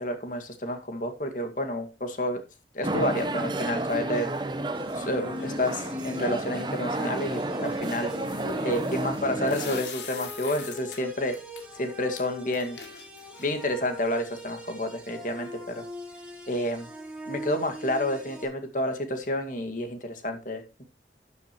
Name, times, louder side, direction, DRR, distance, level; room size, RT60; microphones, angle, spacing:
voice 1, 0.0-2.4 2.7-4.3 4.9-8.1 8.6-11.4 11.8-12.8 13.4-15.9 16.5-16.9 17.3-20.6, left 1 dB, 50° left, 5 dB, 2.0 m, -29 dB
sound 1, 2.8-9.8, right 2 dB, 25° right, 1.0 m, -31 dB
sound 2, 4.7-18.4, equal, 5° right, 3.1 m, -41 dB
sound 3, 5.4-6.1 8.1-11.0 11.3-11.6 12.2-12.3 12.5-13.7, left 5 dB, 80° left, 2.8 m, -42 dB
13.0 x 9.7 x 3.1 m, 0.27 s
head